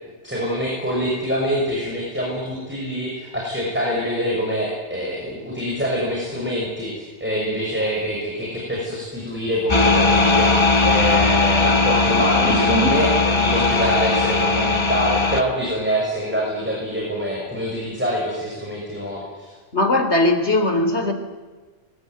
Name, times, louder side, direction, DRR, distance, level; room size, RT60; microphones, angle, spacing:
voice 1, 0.2-19.5, equal, 10° right, -3 dB, 6.4 m, -25 dB
sound 1, 9.7-15.4, left 3 dB, 25° left, 1.5 m, -18 dB
voice 2, 12.4-13.0 19.7-21.1, left 1 dB, 60° left, 6 dB, 3.7 m, -20 dB
23.0 x 23.0 x 9.3 m, 1.3 s
omnidirectional pair, 1.3 m